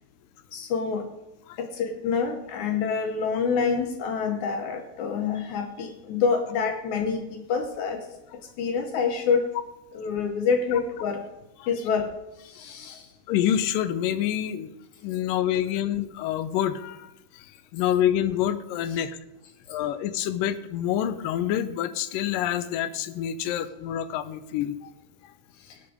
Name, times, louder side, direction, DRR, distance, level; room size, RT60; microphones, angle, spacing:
voice 1, 0.5-1.1 1.6-8.0 8.6-9.5 9.9-11.2 11.7-12.1 12.5-13.0, left 5 dB, 70° left, 6 dB, 2.1 m, -27 dB
voice 2, 13.3-14.7 15.0-17.5 17.7-19.1 19.7-24.9, left 11 dB, 90° left, 13 dB, 2.3 m, -27 dB
18.0 x 7.0 x 5.0 m, 0.96 s
omnidirectional pair, 3.9 m